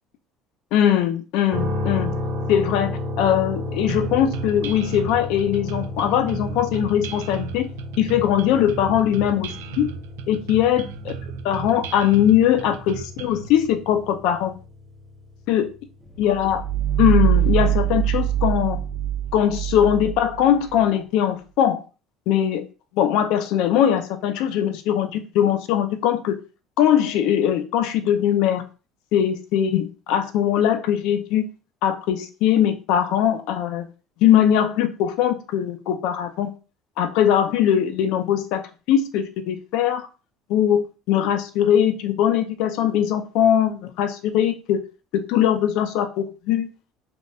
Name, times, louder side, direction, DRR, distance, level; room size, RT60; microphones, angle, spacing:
voice 1, 0.7-2.1 2.5-7.7 8.0-9.9 10.3-11.1 11.4-14.6 15.5-15.7 16.2-16.6 17.0-18.8 19.3-21.8 22.3-22.6 22.9-26.3 26.8-28.6 29.1-31.5 31.8-33.9 34.2-36.5 37.0-38.6 38.9-40.1 40.5-44.8 45.1-46.7, left 10 dB, 75° left, 9 dB, 0.5 m, -21 dB
sound 1, 1.5-15.5, left 2 dB, 35° right, 1.1 m, -33 dB
sound 2, 3.9-13.5, right 9 dB, 90° right, 0.3 m, -35 dB
sound 3, 16.1-20.8, right 11 dB, 10° right, 0.5 m, -23 dB
3.4 x 2.1 x 2.6 m, 0.34 s
supercardioid pair, 95°, 0 cm